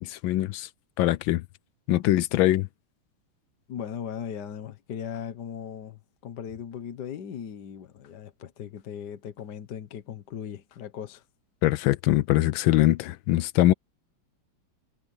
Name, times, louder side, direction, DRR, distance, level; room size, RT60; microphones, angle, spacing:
voice 1, 0.0-0.7 1.0-1.4 1.9-2.7 11.6-13.7, left 15 dB, 75° left, 1.2 m, -22 dB
voice 2, 3.7-11.2, left 8 dB, 55° left, 1.6 m, -38 dB
omnidirectional pair, 2.3 m